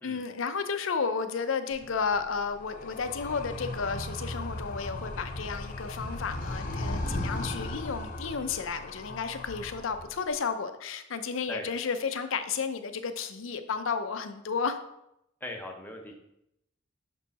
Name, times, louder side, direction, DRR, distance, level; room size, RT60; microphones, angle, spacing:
voice 1, 0.0-14.8, left 5 dB, 70° left, 9 dB, 0.6 m, -32 dB
Animal, 1.7-10.3, left 1 dB, 40° left, 0.8 m, -37 dB
voice 2, 15.4-16.1, left 1 dB, 10° left, 1 dB, 0.9 m, -39 dB
6.1 x 4.5 x 4.1 m, 0.81 s
head